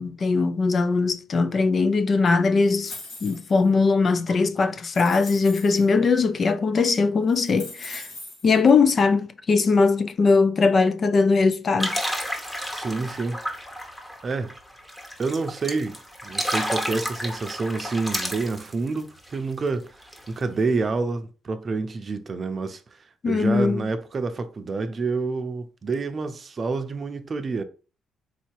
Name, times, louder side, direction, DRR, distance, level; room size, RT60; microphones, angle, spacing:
voice 1, 0.0-2.9 3.2-8.1 8.4-12.0 23.2-23.8, left 4 dB, 45° left, 0.5 m, -20 dB
sound 1, 2.7-3.6 4.3-4.4 4.9-5.8 6.8-6.9 7.3-8.5, left 2 dB, 80° left, 2.7 m, -40 dB
sound 2, 11.8-19.4 19.7-19.8 20.0-20.3, equal, 10° left, 1.3 m, -31 dB
voice 2, 12.7-13.4 14.2-14.5 15.2-19.9 20.3-23.0 23.3-27.6, right 3 dB, 40° right, 0.6 m, -28 dB
4.1 x 2.8 x 4.6 m
cardioid pair, 90°, 0 cm